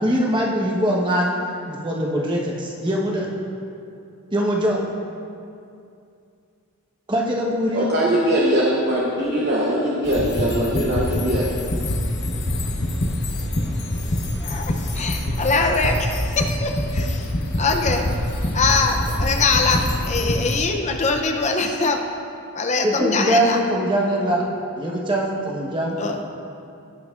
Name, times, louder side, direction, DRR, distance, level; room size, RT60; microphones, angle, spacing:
voice 1, 0.0-1.4 1.7-3.3 4.3-4.8 7.1-7.9 22.8-24.4 24.8-26.0, equal, 20° right, -2 dB, 1.1 m, -22 dB
voice 2, 7.7-11.4, equal, 45° right, -4 dB, 0.9 m, -21 dB
sound 1, 10.0-20.6, left 1 dB, 50° left, 0.9 m, -25 dB
voice 3, 14.4-17.3 17.6-18.1 18.5-22.0 22.5-23.6 26.0-26.1, left 3 dB, 30° left, 4 dB, 0.5 m, -22 dB
17.5 x 5.9 x 2.5 m, 2.5 s
head